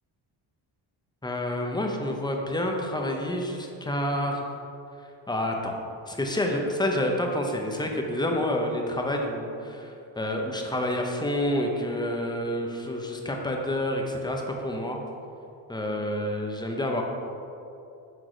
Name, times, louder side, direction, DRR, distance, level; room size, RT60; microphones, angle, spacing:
voice 1, 1.2-4.4 5.3-5.8 6.1-15.0 15.7-17.0, left 1 dB, 10° left, 1 dB, 0.6 m, -28 dB
6.2 x 4.7 x 5.0 m, 2.7 s
cardioid pair, 135°, 46 cm